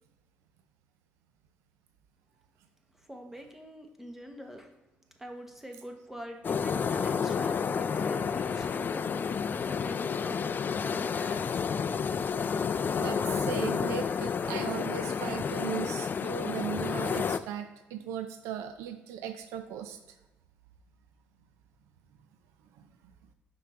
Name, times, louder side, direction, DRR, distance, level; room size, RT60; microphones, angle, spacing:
voice 1, 2.9-4.7 5.2-11.7, equal, 5° right, 4 dB, 1.4 m, -45 dB
sound 1, 6.4-17.4, left 6 dB, 45° left, 0.4 m, -30 dB
voice 2, 13.0-20.0 22.7-22.8, right 9 dB, 85° right, 8 dB, 0.5 m, -37 dB
5.8 x 5.7 x 3.7 m, 1.1 s
supercardioid pair, 70°, 5 cm